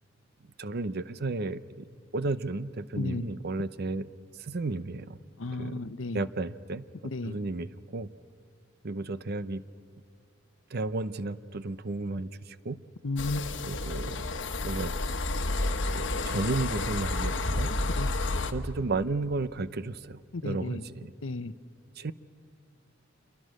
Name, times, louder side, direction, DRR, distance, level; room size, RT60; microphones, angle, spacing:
voice 1, 0.6-1.8 2.1-4.1 4.4-5.2 5.5-6.8 7.2-8.1 8.8-9.6 10.7-12.8 13.6-14.2 14.6-15.0 15.8-17.7 18.2-18.3 18.5-21.1 22.0-22.1, right 3 dB, 55° right, 15 dB, 0.7 m, -33 dB
voice 2, 5.4-6.2 7.0-7.3 13.0-13.5 18.0-18.1 20.3-20.8 21.2-21.5, left 3 dB, 85° left, 14 dB, 0.8 m, -33 dB
sound 1, 13.2-18.5, left 2 dB, 70° left, 1.2 m, -30 dB
27.5 x 23.0 x 6.5 m, 2.3 s
head